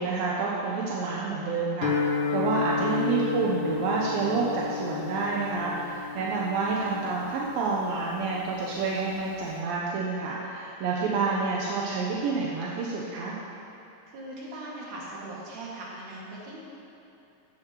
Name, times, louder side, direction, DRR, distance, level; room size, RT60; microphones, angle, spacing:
voice 1, 0.0-13.4, right 4 dB, 80° right, -4 dB, 2.7 m, -28 dB
Guitar, 1.8-9.6, left 5 dB, 70° left, 2.3 m, -32 dB
voice 2, 14.1-16.6, right 2 dB, 60° right, -5 dB, 3.6 m, -40 dB
15.5 x 12.0 x 3.1 m, 3.0 s
omnidirectional pair, 4.1 m